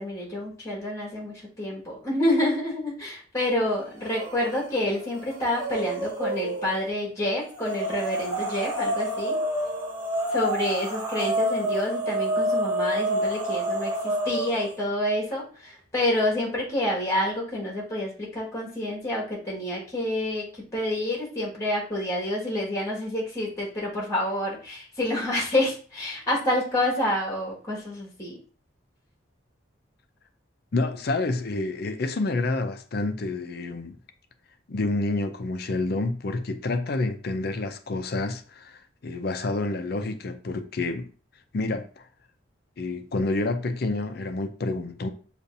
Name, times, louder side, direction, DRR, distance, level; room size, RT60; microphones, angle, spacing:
voice 1, 0.0-9.4 10.3-28.4, left 1 dB, 15° left, 1.7 m, -28 dB
sound 1, 4.0-4.6 5.0-6.8 7.5-14.7, right 1 dB, 15° right, 0.9 m, -28 dB
voice 2, 30.7-34.0 34.7-41.1 41.5-42.1 42.8-45.1, left 2 dB, 50° left, 0.5 m, -28 dB
6.6 x 2.5 x 2.6 m
head